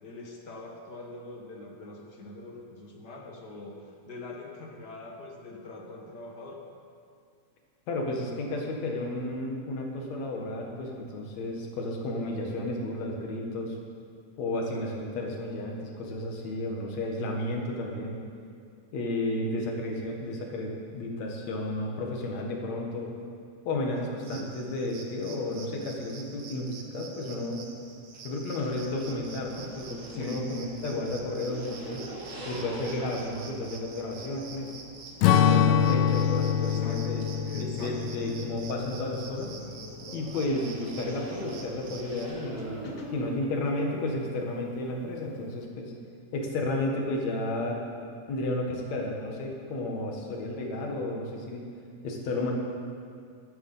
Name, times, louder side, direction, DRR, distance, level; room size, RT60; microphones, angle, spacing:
voice 1, 0.0-6.6 30.1-30.4 36.6-38.2 42.8-43.1, left 2 dB, 45° left, 0 dB, 1.5 m, -44 dB
voice 2, 7.9-13.7 14.4-18.2 18.9-23.1 23.6-27.6 28.2-32.0 32.4-34.8 35.4-39.5 40.1-45.9 46.3-47.8 48.3-51.6 52.0-52.5, left 1 dB, 60° left, 0 dB, 2.9 m, -32 dB
sound 1, 24.2-42.3, right 5 dB, 55° right, 1.6 m, -47 dB
sound 2, 28.6-43.4, right 1 dB, 30° right, 1.5 m, -45 dB
Strum, 35.2-39.9, left 8 dB, 85° left, 2.2 m, -25 dB
13.5 x 12.5 x 5.7 m, 2.3 s
omnidirectional pair, 3.7 m